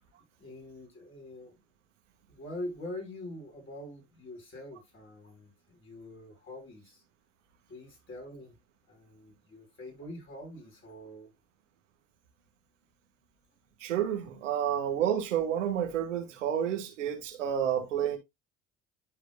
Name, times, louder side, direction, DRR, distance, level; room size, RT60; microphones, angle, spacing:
voice 1, 0.4-1.6 2.3-7.0 7.7-8.5 8.9-11.3, left 1 dB, 35° left, 5.6 m, -44 dB
voice 2, 13.8-18.2, right 9 dB, 85° right, 1.8 m, -30 dB
11.5 x 5.0 x 2.3 m
hypercardioid pair, 70°, 36 cm